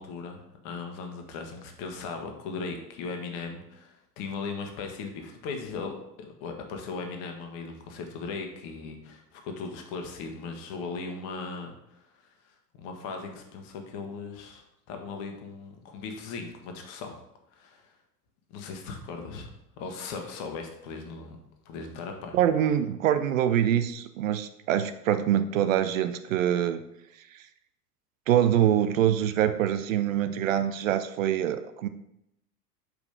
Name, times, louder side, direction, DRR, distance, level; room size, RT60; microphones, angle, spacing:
voice 1, 0.0-12.0 12.8-17.1 17.5-17.8 18.5-19.5 19.8-21.4 21.6-22.4, left 4 dB, 45° left, 4 dB, 1.4 m, -38 dB
voice 2, 22.3-26.8 27.3-27.4 28.3-31.9, right 10 dB, 55° right, 11 dB, 0.6 m, -25 dB
5.2 x 5.1 x 5.1 m, 0.81 s
figure-of-eight pair, 80°, 48 cm